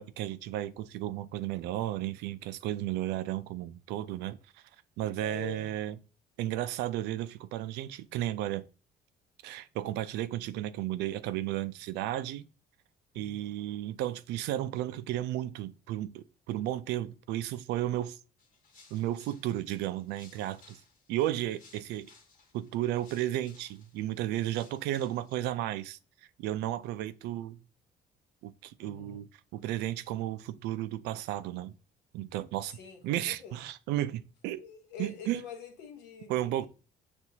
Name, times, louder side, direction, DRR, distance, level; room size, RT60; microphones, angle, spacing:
voice 1, 0.0-4.4 5.0-6.0 6.4-8.6 9.4-12.4 13.1-18.2 18.9-20.8 21.1-22.1 22.5-26.0 26.4-27.6 28.4-31.7 32.1-32.8 33.0-34.6 35.0-35.4 36.3-36.7, right 13 dB, 90° right, 0.4 m, -33 dB
voice 2, 5.2-5.7 13.1-13.5 28.8-29.2 32.6-33.6 34.6-36.7, left 6 dB, 85° left, 1.0 m, -46 dB
sound 1, 18.4-25.4, left 4 dB, 55° left, 1.2 m, -61 dB
6.1 x 2.4 x 2.7 m
cardioid pair, 110°, 17 cm